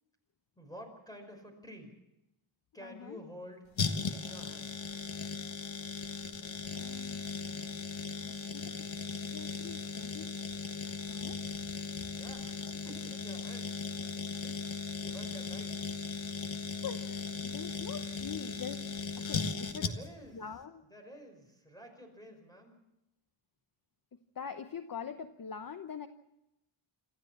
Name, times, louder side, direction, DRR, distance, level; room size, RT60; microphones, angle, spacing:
voice 1, 0.6-2.0 2.7-3.6 4.1-4.8 12.1-16.0 19.7-20.5 20.9-22.8, equal, 5° left, 4 dB, 5.4 m, -51 dB
voice 2, 2.8-3.2 6.7-7.3 8.2-10.3 10.8-11.4 16.8-19.9 20.3-20.8 24.1-26.1, left 7 dB, 40° left, 9 dB, 0.9 m, -44 dB
sound 1, 3.8-20.3 20.5-20.6, left 4 dB, 65° left, 1.6 m, -38 dB
26.5 x 14.0 x 7.3 m, 0.91 s
wide cardioid pair, 135°, 50 cm